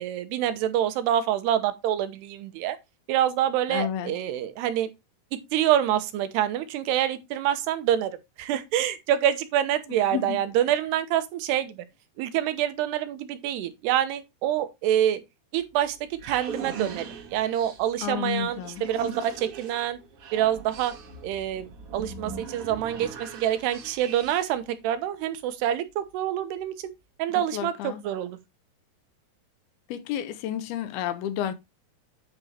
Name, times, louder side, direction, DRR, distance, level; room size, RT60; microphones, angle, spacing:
voice 1, 0.0-2.8 3.1-4.9 5.3-8.1 8.4-11.8 12.2-15.2 15.5-17.1 17.3-20.0 20.3-21.0 21.2-26.7 27.2-28.3, right 11 dB, 85° right, 3.0 m, -26 dB
voice 2, 3.7-4.1 9.9-10.4 18.0-18.9 27.3-28.0 29.9-31.5, left 10 dB, 80° left, 2.5 m, -31 dB
sound 1, 15.6-24.7, right 5 dB, 55° right, 1.8 m, -41 dB
9.2 x 5.0 x 4.2 m
omnidirectional pair, 4.6 m